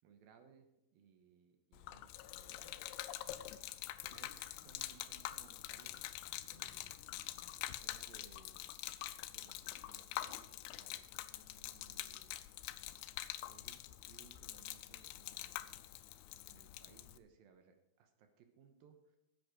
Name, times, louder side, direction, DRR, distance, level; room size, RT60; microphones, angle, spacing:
voice 1, 0.0-3.7 4.0-7.2 7.7-8.7 9.3-12.4 13.5-13.8 14.1-15.8 16.5-19.2, right 7 dB, 75° right, 6 dB, 2.7 m, -65 dB
Gurgling / Liquid, 1.7-17.2, left 14 dB, 90° left, 2.6 m, -46 dB
13.0 x 8.0 x 5.0 m, 0.89 s
omnidirectional pair, 4.5 m